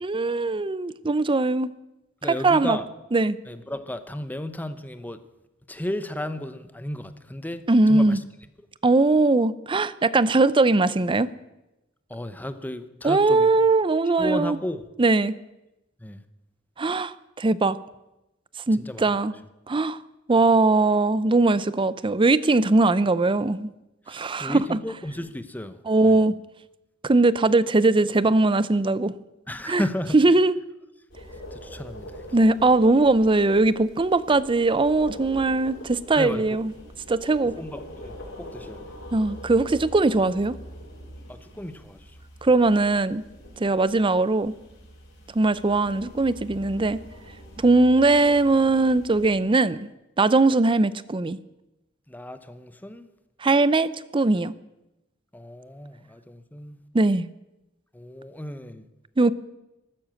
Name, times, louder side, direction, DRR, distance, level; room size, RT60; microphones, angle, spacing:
voice 1, 0.0-1.7 2.3-2.8 3.1-3.4 7.7-8.2 8.8-11.3 13.0-14.6 15.0-15.3 16.8-17.8 18.7-19.3 19.7-20.0 20.3-23.7 24.1-24.8 25.9-26.3 27.0-29.1 29.7-29.8 30.1-30.6 32.3-36.7 37.1-37.6 39.1-40.5 42.4-43.2 43.6-44.5 45.3-47.0 47.6-49.8 50.2-51.4 53.4-54.5 56.9-57.3 59.2-59.3, right 2 dB, 25° right, 0.5 m, -20 dB
voice 2, 2.2-2.9 3.5-5.2 5.7-8.2 12.1-13.5 14.2-14.8 16.0-16.2 18.7-19.2 24.1-25.8 26.0-26.2 29.5-30.1 31.5-32.2 36.2-36.6 37.5-38.8 41.3-42.1 52.1-53.1 55.3-56.8 57.9-58.9, left 1 dB, 10° left, 0.8 m, -34 dB
sound 1, 31.1-49.4, equal, 60° left, 4.8 m, -44 dB
14.0 x 12.5 x 7.7 m
head